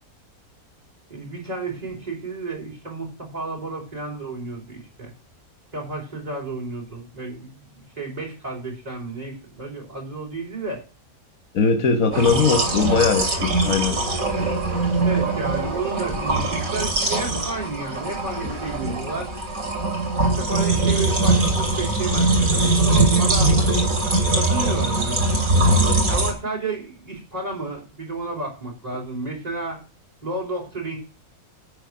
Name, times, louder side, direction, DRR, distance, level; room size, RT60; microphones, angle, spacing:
voice 1, 1.1-5.1 5.7-10.8 12.1-12.4 15.0-19.3 20.4-23.6 24.3-25.4 26.1-29.8 30.2-31.0, right 3 dB, 25° right, 4.7 m, -32 dB
voice 2, 11.5-14.0, left 5 dB, 65° left, 1.4 m, -20 dB
sound 1, 12.1-26.3, right 2 dB, 60° right, 3.3 m, -21 dB
9.7 x 8.6 x 6.0 m
omnidirectional pair, 1.6 m